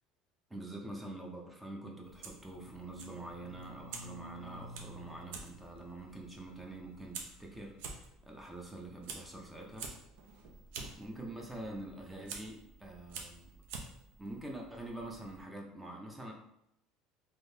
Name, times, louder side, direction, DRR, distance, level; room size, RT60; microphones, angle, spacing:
voice 1, 0.5-9.9 11.0-13.5 14.2-16.3, right 1 dB, 10° right, -1 dB, 0.5 m, -45 dB
Fire, 2.0-15.4, right 4 dB, 80° right, 0.5 m, -50 dB
sound 1, 2.6-7.8, right 1 dB, 80° left, 0.4 m, -53 dB
3.6 x 2.7 x 2.7 m, 0.78 s
cardioid pair, 140°, 0 cm